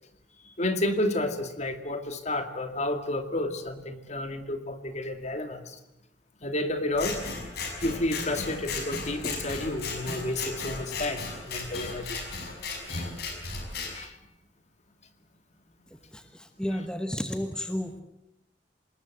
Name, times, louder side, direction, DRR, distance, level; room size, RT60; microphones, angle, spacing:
voice 1, 0.4-5.8 6.4-7.2 7.8-12.2 12.9-13.1 13.9-14.2, left 1 dB, 40° left, 7 dB, 2.3 m, -31 dB
Scissors, 6.9-13.9, left 3 dB, 60° left, 6.1 m, -35 dB
voice 2, 16.1-17.9, equal, 5° left, 7 dB, 1.2 m, -32 dB
26.5 x 20.5 x 7.7 m, 0.84 s
head